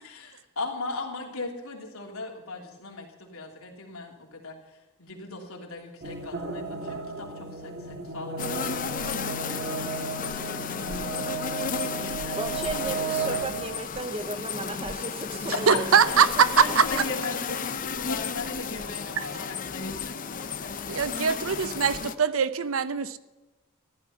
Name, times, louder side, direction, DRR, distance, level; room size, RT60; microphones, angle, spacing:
voice 1, 0.0-4.6 5.0-11.6 11.8-12.4 13.1-13.4 15.7-15.8 16.1-16.2 16.6-20.7, left 3 dB, 75° left, 3.2 m, -39 dB
sound 1, 6.0-13.7, right 4 dB, 50° right, 1.6 m, -34 dB
sound 2, 8.4-22.1, left 6 dB, 40° left, 0.7 m, -33 dB
voice 2, 12.3-16.4, right 2 dB, 25° right, 0.8 m, -35 dB
voice 3, 15.7-17.0 19.2-19.3 20.9-23.2, right 6 dB, 65° right, 0.7 m, -22 dB
15.0 x 12.0 x 5.7 m
head